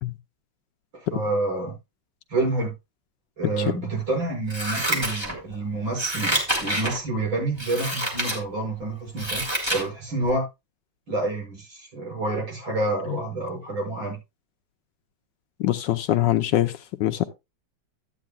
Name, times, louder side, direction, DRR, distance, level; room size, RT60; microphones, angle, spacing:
voice 1, 0.9-1.7 2.3-2.7 3.4-9.4 9.7-10.5 11.1-14.2, right 2 dB, 75° right, 7.6 m, -28 dB
Scissors, 4.5-5.6 5.9-7.0 7.6-8.4 8.8-9.9 10.3-10.4, right 1 dB, 10° right, 3.0 m, -27 dB
voice 2, 15.6-17.2, left 13 dB, 70° left, 1.2 m, -23 dB
13.5 x 9.2 x 2.4 m
omnidirectional pair, 2.2 m